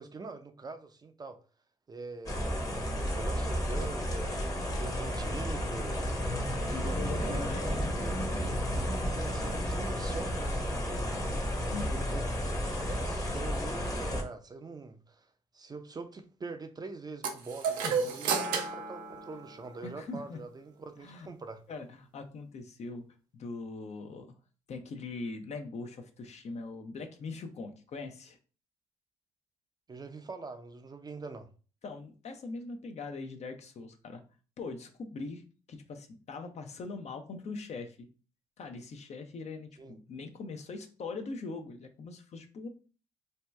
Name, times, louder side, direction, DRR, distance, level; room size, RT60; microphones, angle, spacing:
voice 1, 0.0-1.4 1.9-6.1 6.6-8.3 9.1-11.3 11.6-21.6 29.9-31.5 39.8-39.9, right 3 dB, 30° right, 0.5 m, -44 dB
sound 1, 2.3-14.2, equal, 25° left, 0.9 m, -32 dB
voice 2, 6.7-8.0 11.7-12.1 17.6-18.1 19.8-20.4 21.0-21.3 21.7-23.0 23.3-24.3 24.7-28.4 31.8-34.2 34.6-35.4 35.7-38.1 38.6-42.7, left 3 dB, 50° left, 0.6 m, -41 dB
sound 2, 17.2-19.9, right 5 dB, 80° right, 0.6 m, -32 dB
2.7 x 2.2 x 3.3 m
supercardioid pair, 60°, 14 cm